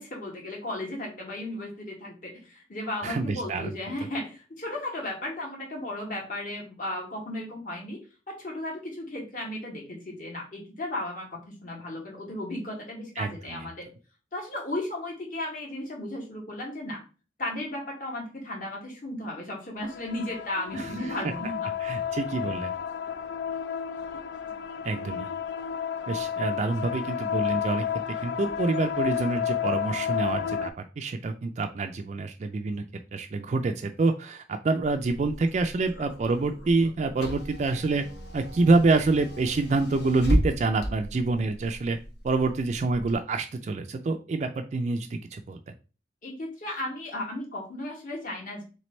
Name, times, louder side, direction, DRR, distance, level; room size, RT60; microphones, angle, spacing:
voice 1, 0.0-8.0 8.3-13.9 14.3-17.0 17.4-21.7 24.1-24.2 46.2-48.6, left 1 dB, 50° left, -1 dB, 1.5 m, -35 dB
voice 2, 3.0-3.7 13.2-13.7 20.7-20.9 21.8-22.7 24.8-25.3 26.1-27.8 28.2-32.8 33.1-38.0 38.3-42.0 42.2-45.7, right 3 dB, 40° right, 6 dB, 0.3 m, -27 dB
sound 1, 19.8-30.7, left 8 dB, 80° left, 0.4 m, -31 dB
Car / Engine, 34.8-43.1, equal, 65° left, 1.1 m, -34 dB
3.3 x 3.2 x 4.2 m, 0.34 s
head